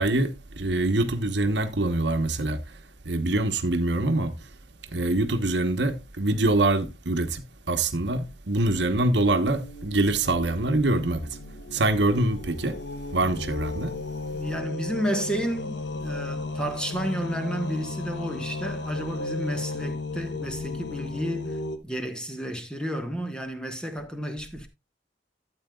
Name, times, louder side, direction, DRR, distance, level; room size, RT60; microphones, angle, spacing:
voice 1, 0.0-2.6 3.0-4.3 4.9-11.3 11.7-12.8 13.1-13.9, right 2 dB, 70° right, 1.1 m, -24 dB
sound 1, 9.2-21.8, left 3 dB, 70° left, 1.0 m, -35 dB
voice 2, 14.3-21.6 21.8-24.7, right 1 dB, 5° left, 1.3 m, -31 dB
12.5 x 8.6 x 2.3 m
head